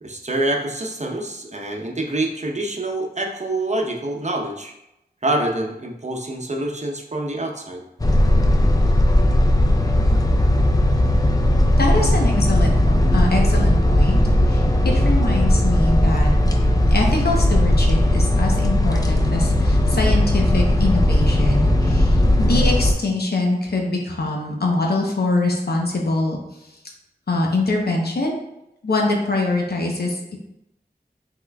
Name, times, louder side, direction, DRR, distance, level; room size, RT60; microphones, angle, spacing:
voice 1, 0.0-4.7 5.2-7.8, right 1 dB, 40° right, 1 dB, 0.8 m, -26 dB
sound 1, 8.0-22.9, left 1 dB, 20° left, 0.6 m, -17 dB
voice 2, 11.8-12.7 13.1-14.2 14.4-16.3 16.9-26.4 27.3-28.4 28.8-30.4, left 2 dB, 70° left, 0 dB, 0.8 m, -23 dB
5.8 x 3.7 x 2.2 m, 0.86 s
wide cardioid pair, 50°, 17 cm